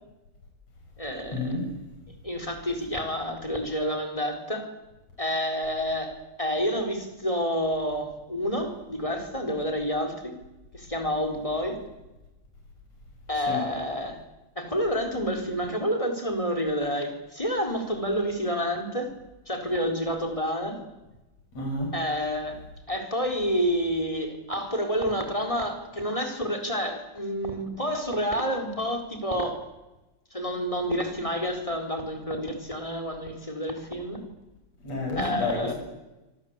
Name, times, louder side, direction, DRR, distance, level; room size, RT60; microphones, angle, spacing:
voice 1, 1.0-1.6 2.2-4.7 5.2-10.4 10.7-11.8 13.3-14.2 14.6-19.1 19.5-20.8 21.9-22.6 22.9-29.6 30.3-34.2 35.2-35.7, equal, 10° left, 6 dB, 4.3 m, -29 dB
voice 2, 21.5-21.9 34.8-35.7, left 2 dB, 55° left, 1 dB, 7.6 m, -30 dB
26.5 x 26.0 x 8.3 m, 1.0 s
omnidirectional pair, 3.5 m